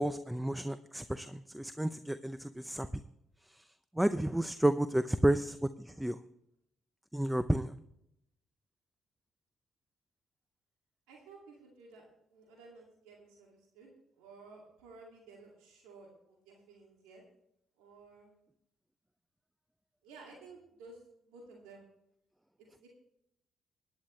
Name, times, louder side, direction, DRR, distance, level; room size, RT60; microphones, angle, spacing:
voice 1, 0.0-2.9 3.5-3.7 3.9-6.2 7.1-7.7, right 1 dB, 5° right, 12 dB, 0.6 m, -31 dB
voice 2, 11.1-12.0 12.3-17.2 17.8-18.3 20.0-21.8 22.6-22.9, right 3 dB, 90° right, -1 dB, 2.4 m, -55 dB
18.5 x 10.0 x 3.2 m, 0.78 s
supercardioid pair, 60°, 0 cm